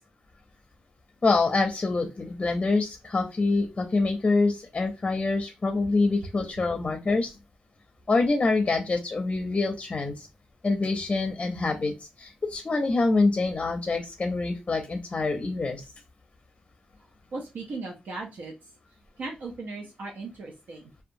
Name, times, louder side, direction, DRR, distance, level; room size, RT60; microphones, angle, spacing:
voice 1, 1.2-7.4 8.1-10.3 10.6-15.9, left 3 dB, 35° left, 4 dB, 0.5 m, -26 dB
voice 2, 17.3-18.5 19.2-20.9, right 3 dB, 80° right, 0 dB, 0.5 m, -37 dB
2.7 x 2.2 x 2.6 m, 0.26 s
cardioid pair, 85°, 3 cm